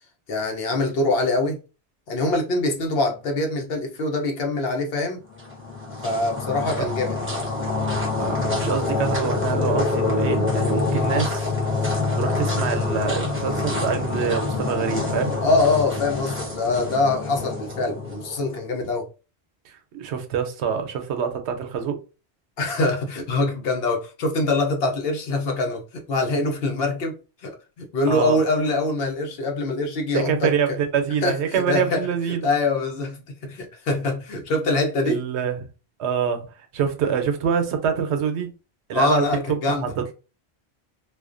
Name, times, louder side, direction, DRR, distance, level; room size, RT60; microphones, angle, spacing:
voice 1, 0.3-1.6 2.1-5.2 6.0-7.2 15.4-19.1 22.6-27.1 27.4-30.5 31.2-32.1 32.4-35.2 38.9-39.9, left 2 dB, 65° left, 0.9 m, -24 dB
sound 1, 5.3-18.6, left 3 dB, 15° right, 0.6 m, -26 dB
voice 2, 8.2-11.5 12.1-15.4 19.7-22.0 28.1-28.4 30.1-32.5 35.0-35.7 36.0-36.5 36.7-38.5 38.9-39.2 39.7-40.1, right 7 dB, 85° right, 0.9 m, -25 dB
2.4 x 2.1 x 2.4 m
omnidirectional pair, 1.1 m